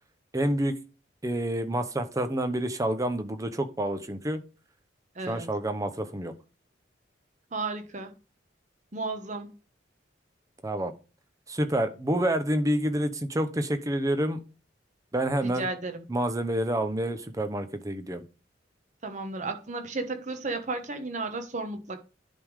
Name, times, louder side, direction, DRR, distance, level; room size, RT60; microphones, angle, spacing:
voice 1, 0.3-0.8 1.2-4.4 5.3-6.3 10.6-10.9 11.5-14.4 15.1-15.7 16.1-18.2, right 1 dB, 20° right, 0.8 m, -28 dB
voice 2, 5.1-5.5 7.5-8.1 8.9-9.5 15.4-16.0 19.0-22.0, right 3 dB, 40° right, 1.2 m, -33 dB
10.5 x 3.6 x 4.9 m
head